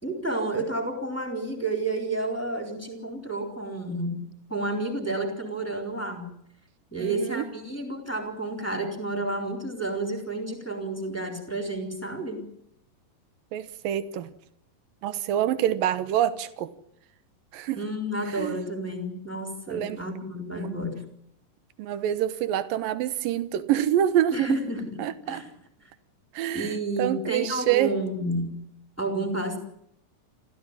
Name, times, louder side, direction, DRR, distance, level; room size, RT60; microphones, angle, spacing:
voice 1, 0.0-4.2 4.5-6.3 6.9-12.4 17.8-21.0 24.3-25.0 25.2-25.5 25.8-25.9 26.5-28.6 29.0-29.6, right 2 dB, 5° left, 3 dB, 3.7 m, -30 dB
voice 2, 7.0-7.4 13.5-14.3 15.0-16.7 17.5-17.8 18.3-18.6 19.7-20.0 20.5-20.7 21.8-24.5 25.0-25.4 26.3-27.9, right 11 dB, 85° right, 13 dB, 2.9 m, -26 dB
27.5 x 15.0 x 9.9 m, 0.74 s
omnidirectional pair, 3.9 m